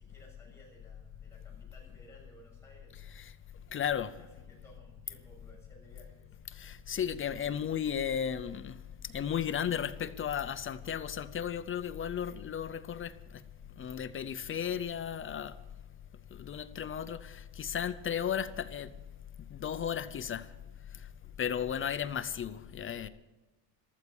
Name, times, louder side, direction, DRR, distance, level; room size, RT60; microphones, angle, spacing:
voice 1, 0.0-3.2 3.5-6.4, equal, 5° left, 6.9 m, -59 dB
voice 2, 3.7-4.1 6.5-8.8 9.0-13.4 13.8-15.6 16.3-18.9 19.5-20.5 20.9-21.1 21.4-23.1, left 8 dB, 30° left, 0.5 m, -34 dB
14.5 x 13.5 x 7.0 m
cardioid pair, 170°, 45 cm